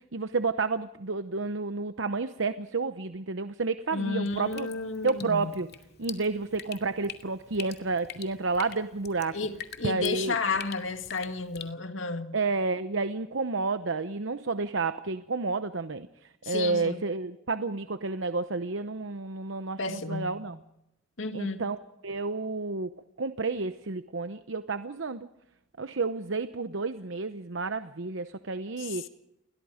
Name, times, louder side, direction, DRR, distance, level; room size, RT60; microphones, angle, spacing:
voice 1, 0.0-4.7 5.0-5.7 6.0-9.4 9.8-10.4 12.3-20.6 21.3-21.8 22.0-22.9 23.2-25.3 25.8-29.0, right 3 dB, 75° right, 0.9 m, -30 dB
voice 2, 3.9-5.6 9.3-12.4 16.4-17.0 19.8-20.5 21.2-21.7 28.8-29.1, left 4 dB, 85° left, 2.1 m, -32 dB
Drip, 4.2-11.7, left 8 dB, 55° left, 2.3 m, -46 dB
29.5 x 22.0 x 5.1 m
head